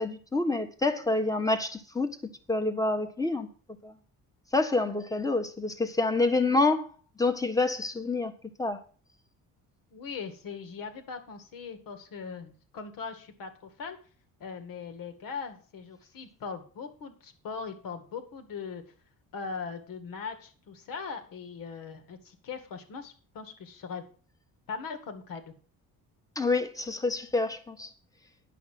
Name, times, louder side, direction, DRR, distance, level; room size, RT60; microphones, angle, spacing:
voice 1, 0.0-2.1 2.5-3.5 3.8-3.9 4.5-6.9 7.2-8.3 8.6-8.8 26.3-27.9, left 3 dB, 10° left, 1.4 m, -27 dB
voice 2, 9.9-14.0 14.4-18.8 19.3-24.1 24.7-25.5, left 5 dB, 70° left, 2.1 m, -40 dB
10.0 x 5.8 x 7.6 m
cardioid pair, 110°, 35 cm